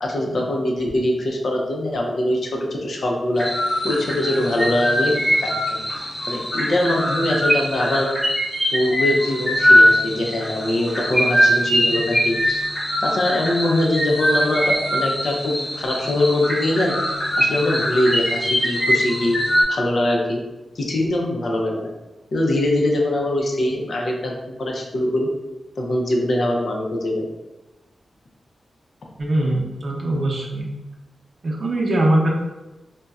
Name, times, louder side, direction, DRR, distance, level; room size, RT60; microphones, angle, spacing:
voice 1, 0.0-3.5 3.8-5.8 6.3-8.1 8.7-12.6 13.0-16.9 17.4-19.4 19.7-20.4 20.8-21.9 22.3-25.3 25.8-27.3, left 1 dB, 60° left, 0 dB, 0.5 m, -22 dB
sound 1, 3.4-19.6, equal, 20° left, 1.0 m, -21 dB
voice 2, 29.2-30.7 31.4-32.3, right 1 dB, 55° right, -2 dB, 0.6 m, -21 dB
4.0 x 2.1 x 2.3 m, 1.1 s
wide cardioid pair, 125°, 0 cm